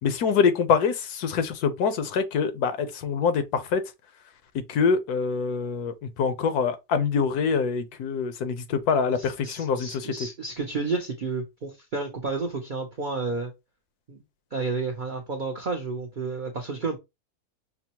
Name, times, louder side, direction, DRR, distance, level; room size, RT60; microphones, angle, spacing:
voice 1, 0.0-3.8 4.5-10.1, left 6 dB, 80° left, 1.2 m, -25 dB
voice 2, 9.1-13.5 14.1-14.2 14.5-17.0, right 4 dB, 60° right, 0.5 m, -31 dB
5.9 x 2.0 x 2.8 m
omnidirectional pair, 1.6 m